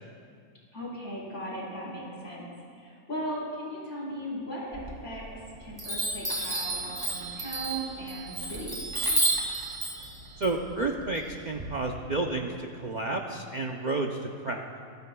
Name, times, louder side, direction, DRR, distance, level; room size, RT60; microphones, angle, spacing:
voice 1, 0.7-2.4 2.7-5.3 5.6-8.8, equal, 55° left, -6 dB, 4.3 m, -37 dB
Chime, 4.7-5.4 5.8-11.6, right 2 dB, 15° right, 2.2 m, -31 dB
voice 2, 10.4-12.5 12.8-14.7, right 2 dB, 45° right, 2 dB, 0.6 m, -31 dB
20.5 x 13.0 x 2.3 m, 2.2 s
omnidirectional pair, 1.5 m